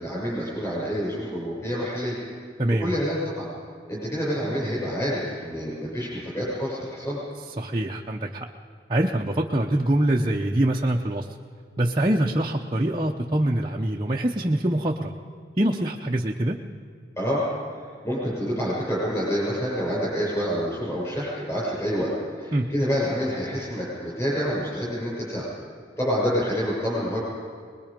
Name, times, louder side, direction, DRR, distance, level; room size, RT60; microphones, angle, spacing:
voice 1, 0.0-2.1 2.8-3.5 3.9-7.2 17.2-17.4 17.8-25.5 26.0-27.2, equal, 15° left, -5 dB, 6.8 m, -27 dB
voice 2, 2.6-2.9 7.4-8.5 8.9-11.3 11.8-15.1 15.6-16.6 22.5-22.7, right 1 dB, 25° right, -1 dB, 0.7 m, -24 dB
23.5 x 21.0 x 5.2 m, 2.2 s
head